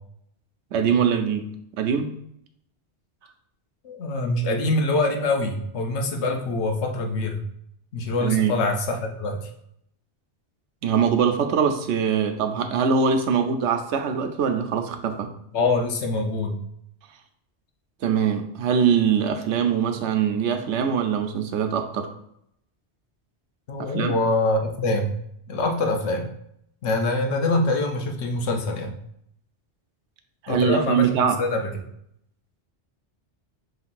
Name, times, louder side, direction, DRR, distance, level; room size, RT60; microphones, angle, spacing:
voice 1, 0.7-1.5 1.8-2.1 8.2-8.5 10.8-15.3 18.0-22.1 23.9-24.1 30.4-31.4, right 7 dB, 85° right, 6 dB, 0.9 m, -22 dB
voice 2, 3.8-7.4 7.9-9.5 15.5-16.6 23.7-25.2 25.5-26.3 26.8-28.9 30.5-31.1 31.4-31.7, left 2 dB, 80° left, 3 dB, 1.0 m, -24 dB
5.5 x 3.1 x 2.5 m, 0.73 s
omnidirectional pair, 1.1 m